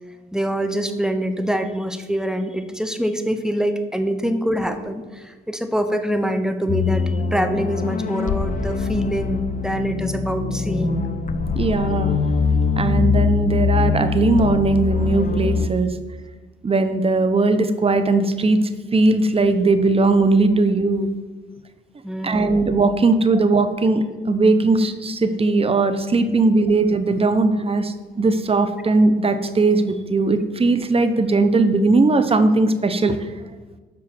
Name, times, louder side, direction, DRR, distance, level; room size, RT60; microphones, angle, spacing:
voice 1, 0.3-11.1 22.0-22.5, equal, 5° right, 8 dB, 0.9 m, -25 dB
sound 1, 6.7-15.7, left 5 dB, 40° left, 0.7 m, -22 dB
voice 2, 11.5-12.1 12.8-15.9 16.6-18.6 18.9-21.1 22.2-33.2, right 3 dB, 30° right, 10 dB, 0.9 m, -19 dB
7.6 x 5.6 x 7.4 m, 1.3 s
cardioid pair, 90°, 20 cm